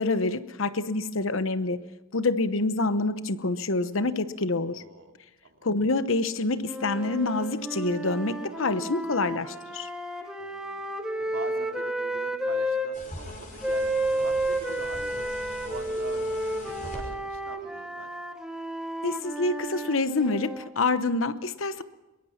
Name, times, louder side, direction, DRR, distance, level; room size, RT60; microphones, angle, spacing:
voice 1, 0.0-1.8 2.1-4.8 5.6-9.9 19.0-21.8, left 3 dB, 70° left, 0.9 m, -27 dB
voice 2, 4.8-5.1 5.4-5.6 10.4-10.9 11.2-15.3 15.6-18.1, right 3 dB, 75° right, 2.5 m, -44 dB
sound 1, 6.6-12.9 13.6-20.7, right 1 dB, 5° right, 1.7 m, -31 dB
sound 2, 12.9-17.0, left 1 dB, 40° left, 5.5 m, -42 dB
22.5 x 22.0 x 5.8 m
head